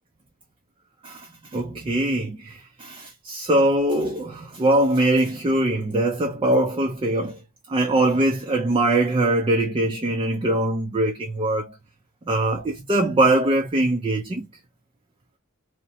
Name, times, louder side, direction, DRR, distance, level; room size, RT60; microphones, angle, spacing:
voice 1, 1.0-7.4 7.7-11.8 12.3-14.5, right 1 dB, 25° right, 0.4 m, -22 dB
2.8 x 2.1 x 2.6 m
head